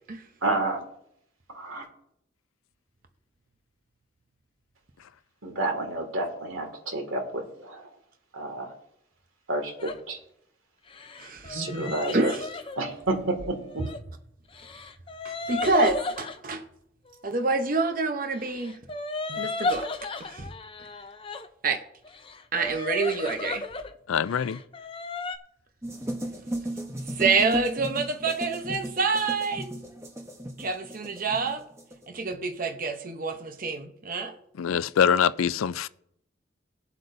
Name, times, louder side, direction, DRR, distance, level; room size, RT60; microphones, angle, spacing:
voice 1, 0.4-0.8 1.5-1.8 5.4-7.8 8.3-8.7 9.5-10.2 11.5-12.3 12.8-13.4, right 2 dB, 85° right, 2.1 m, -29 dB
sound 1, 9.8-10.0 10.9-14.0 14.5-16.4 18.4-21.5 22.0-23.9 24.2-25.4, left 3 dB, 25° left, 0.5 m, -34 dB
voice 2, 11.2-12.5 13.8-13.9 15.2-16.6 17.2-18.8 19.3-19.9 20.2-20.5 21.6-21.8 22.5-23.6 27.2-29.8 30.6-31.6 32.1-34.3, right 4 dB, 45° right, 0.8 m, -27 dB
voice 3, 24.1-24.6 34.6-35.9, left 7 dB, 85° left, 0.4 m, -24 dB
sound 2, 25.8-32.0, right 1 dB, 15° right, 1.0 m, -35 dB
20.5 x 7.8 x 2.6 m
head